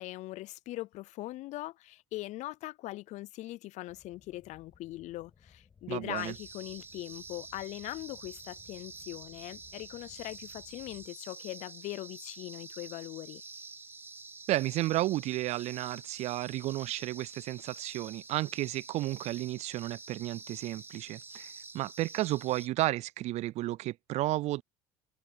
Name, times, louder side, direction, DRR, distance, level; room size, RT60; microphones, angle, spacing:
voice 1, 0.0-13.4, left 17 dB, 60° left, 0.6 m, -41 dB
sound 1, 3.9-11.1, left 6 dB, 30° left, 6.8 m, -61 dB
voice 2, 5.9-6.3 14.5-24.6, right 17 dB, 55° right, 0.4 m, -32 dB
sound 2, 6.2-22.7, right 3 dB, 15° right, 1.1 m, -48 dB
supercardioid pair, 90°, 14 cm